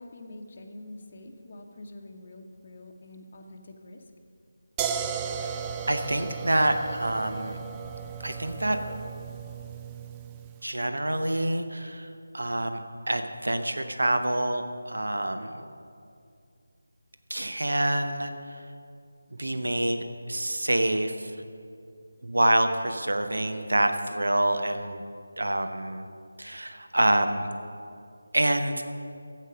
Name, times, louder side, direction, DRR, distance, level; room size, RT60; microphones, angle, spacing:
voice 1, 0.0-4.0, left 1 dB, 35° left, 3 dB, 0.9 m, -45 dB
sound 1, 4.8-10.6, right 7 dB, 10° right, 0.3 m, -35 dB
voice 2, 5.9-7.6 8.2-8.8 10.6-12.8 13.1-15.6 17.3-18.7 19.4-21.4 22.2-25.0 25.4-26.1 26.4-27.5 28.3-28.8, right 1 dB, 65° right, 7 dB, 0.9 m, -27 dB
12.0 x 8.5 x 5.0 m, 2.4 s
figure-of-eight pair, 160°, 0 cm